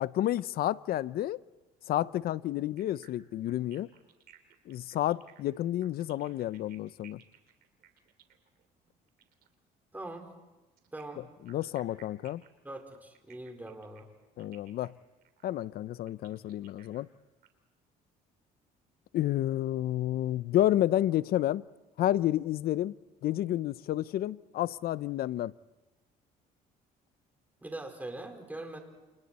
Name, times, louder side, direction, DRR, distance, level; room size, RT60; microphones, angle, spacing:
voice 1, 0.0-1.4 1.9-3.9 4.7-7.2 11.5-12.4 14.4-14.9 15.4-17.1 19.1-21.6 22.0-22.9 23.2-25.5, left 13 dB, 65° left, 0.7 m, -30 dB
sound 1, 2.8-9.5 10.8-17.5, right 10 dB, 65° right, 3.2 m, -59 dB
voice 2, 9.9-10.3 10.9-11.2 12.6-14.1 27.6-28.8, right 2 dB, 10° right, 4.5 m, -42 dB
29.0 x 29.0 x 4.3 m
cardioid pair, 110°, 17 cm